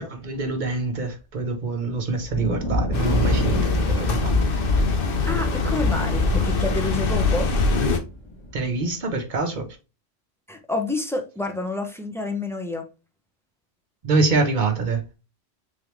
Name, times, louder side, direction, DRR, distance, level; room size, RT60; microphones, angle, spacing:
voice 1, 0.1-4.3 8.5-9.7 14.0-15.0, right 3 dB, 45° right, 0.8 m, -25 dB
Thunder, 2.1-8.8, left 2 dB, 25° left, 1.0 m, -26 dB
sound 1, 2.9-8.0, left 4 dB, 55° left, 0.8 m, -24 dB
voice 2, 5.2-7.5 10.5-12.9, left 2 dB, 5° left, 0.3 m, -28 dB
3.7 x 3.4 x 3.0 m
omnidirectional pair, 1.2 m